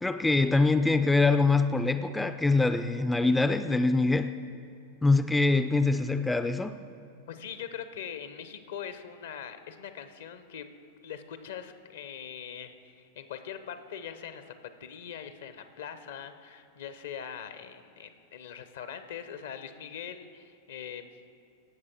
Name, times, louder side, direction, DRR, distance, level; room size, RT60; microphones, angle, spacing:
voice 1, 0.0-4.4 5.0-6.8, left 3 dB, 10° left, 0.3 m, -24 dB
voice 2, 7.3-10.7 11.0-14.5 14.8-21.1, left 8 dB, 65° left, 0.7 m, -42 dB
17.5 x 6.4 x 4.5 m
figure-of-eight pair, 90°, 0 cm